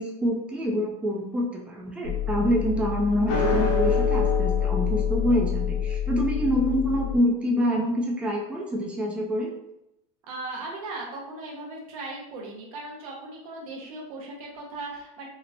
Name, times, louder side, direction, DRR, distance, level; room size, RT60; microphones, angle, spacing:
voice 1, 0.0-9.5, equal, 5° right, -2 dB, 0.4 m, -26 dB
sound 1, 2.0-7.2, left 6 dB, 65° left, 0.6 m, -25 dB
voice 2, 10.3-15.3, right 2 dB, 90° right, -1 dB, 0.9 m, -37 dB
2.9 x 2.0 x 2.6 m, 0.84 s
supercardioid pair, 135°, 18 cm